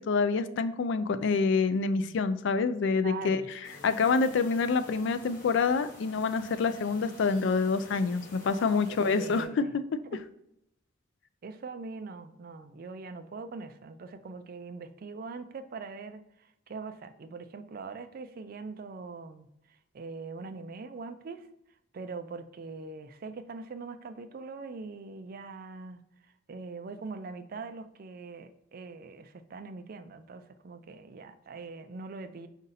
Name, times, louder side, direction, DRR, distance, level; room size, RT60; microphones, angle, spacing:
voice 1, 0.1-3.4 3.8-9.7, left 4 dB, 60° left, 12 dB, 0.3 m, -27 dB
voice 2, 3.0-3.5 8.5-9.7 10.0-10.2 11.4-21.5 21.9-26.0 26.5-32.5, right 4 dB, 45° right, 10 dB, 0.4 m, -42 dB
sound 1, 3.6-9.4, left 1 dB, 40° left, 1.1 m, -50 dB
5.0 x 2.7 x 3.9 m, 0.82 s
head